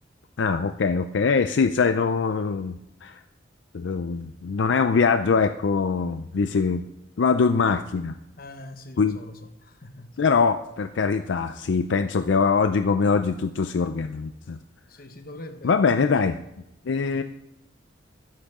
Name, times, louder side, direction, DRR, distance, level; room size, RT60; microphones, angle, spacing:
voice 1, 0.4-2.7 3.0-3.2 3.7-6.9 7.2-8.2 9.0-9.2 10.2-14.6 15.6-16.4 16.9-17.2, left 5 dB, 80° left, 0.5 m, -23 dB
voice 2, 8.4-10.2 14.9-16.3, left 1 dB, 55° left, 1.1 m, -43 dB
13.5 x 10.0 x 3.7 m
head